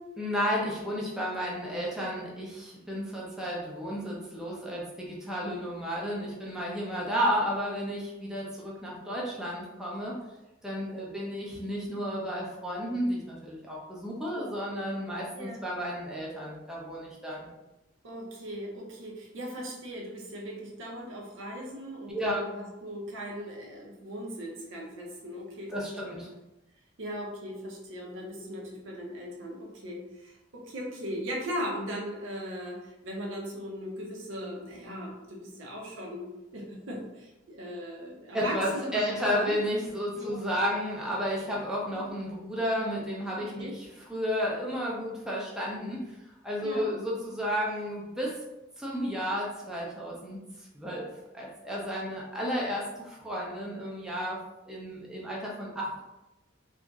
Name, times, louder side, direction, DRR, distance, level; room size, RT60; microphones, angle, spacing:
voice 1, 0.2-10.1 10.6-17.5 22.1-22.4 25.7-26.3 38.3-46.2 46.4-48.4 48.8-51.1 51.3-54.4 54.7-56.0, equal, 5° right, -4 dB, 0.5 m, -32 dB
voice 2, 18.0-26.2 27.0-39.5 40.1-40.3 41.4-41.6 43.3-43.7 46.6-46.9, equal, 80° right, -2 dB, 0.6 m, -38 dB
2.8 x 2.5 x 2.3 m, 0.98 s
head